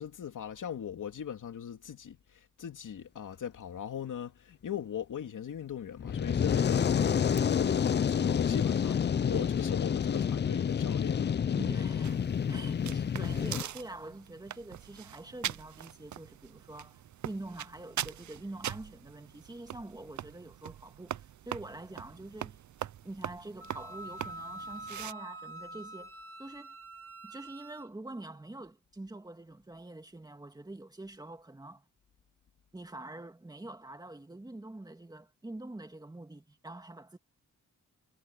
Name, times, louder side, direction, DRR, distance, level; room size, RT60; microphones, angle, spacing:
voice 1, 0.0-11.3, left 9 dB, 75° left, 2.7 m, -40 dB
Fire, 6.0-13.6, left 7 dB, 35° left, 0.4 m, -28 dB
voice 2, 9.3-9.7 11.6-22.6 23.0-26.8 27.2-31.8 32.7-37.2, right 2 dB, 10° right, 2.2 m, -45 dB
sound 1, 12.0-25.1, right 11 dB, 65° right, 0.6 m, -42 dB
Wind instrument woodwind instrument, 23.6-27.9, right 2 dB, 45° right, 1.6 m, -45 dB
wide cardioid pair, 165°, 31 cm